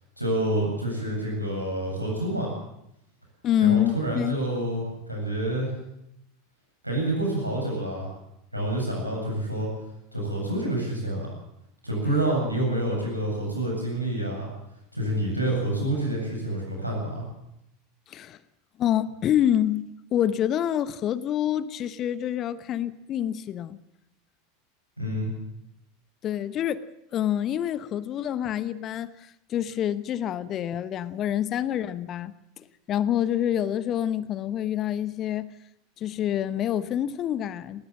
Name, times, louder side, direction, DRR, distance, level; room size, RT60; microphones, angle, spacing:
voice 1, 0.2-2.6 3.6-5.7 6.8-8.1 8.5-9.7 10.1-11.3 11.8-14.5 14.9-17.3 25.0-25.3, right 1 dB, 90° right, 7.9 m, -28 dB
voice 2, 3.4-4.4 18.1-18.4 18.8-19.8 20.1-23.8 26.2-26.8 27.1-35.5 36.0-37.9, left 10 dB, 35° left, 0.9 m, -27 dB
19.0 x 18.5 x 7.5 m
figure-of-eight pair, 80°, 0 cm